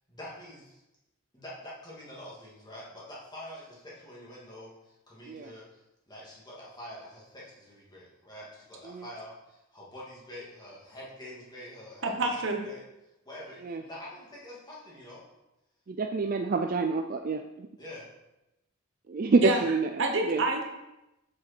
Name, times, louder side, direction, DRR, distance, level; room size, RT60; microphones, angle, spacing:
voice 1, 0.1-0.8 1.3-5.6 6.1-12.3 12.6-12.8 13.2-15.2 17.8-18.1 19.4-19.6, left 1 dB, 20° left, -6 dB, 2.3 m, -46 dB
voice 2, 12.0-12.6 19.4-19.6 20.0-20.7, right 1 dB, 55° right, 3 dB, 1.2 m, -27 dB
voice 3, 15.9-17.7 19.1-19.9 20.2-20.4, right 4 dB, 40° right, 5 dB, 0.4 m, -27 dB
7.3 x 6.3 x 4.4 m, 0.93 s
head